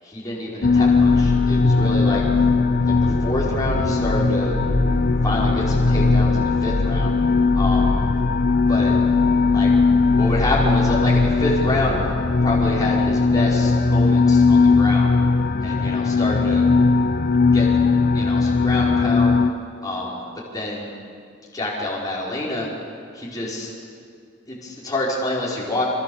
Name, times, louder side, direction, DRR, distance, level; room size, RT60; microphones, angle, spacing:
voice 1, 0.0-2.2 2.9-4.6 5.2-7.1 7.5-8.0 8.7-8.9 9.5-9.7 10.2-12.1 12.4-15.1 15.6-16.7 17.5-17.7 18.1-19.4 19.8-20.9 21.5-22.7 23.1-23.7 24.5-25.8, left 1 dB, 20° left, -6 dB, 5.3 m, -27 dB
sound 1, 0.6-19.5, left 4 dB, 45° left, 0.8 m, -18 dB
Bowed string instrument, 3.4-7.5, right 3 dB, 85° right, 3.8 m, -36 dB
27.5 x 26.5 x 7.2 m, 2.2 s
head